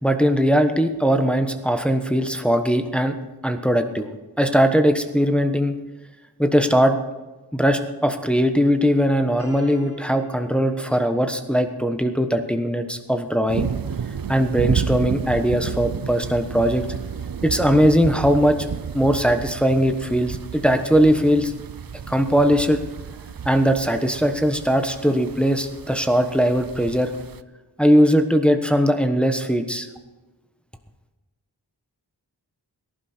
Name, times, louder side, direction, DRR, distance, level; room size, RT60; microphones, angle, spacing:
voice 1, 0.0-3.1 3.4-4.1 4.4-5.7 6.4-7.0 7.5-13.7 14.3-16.8 17.4-18.6 18.9-21.5 22.1-22.8 23.4-27.1 27.8-29.9, equal, 5° left, 6 dB, 1.2 m, -20 dB
Piano, 9.4-15.3, left 1 dB, 35° left, 5.7 m, -48 dB
sound 1, 13.5-27.4, right 7 dB, 55° right, 0.6 m, -32 dB
17.5 x 11.5 x 4.4 m, 1.2 s
wide cardioid pair, 50°, 41 cm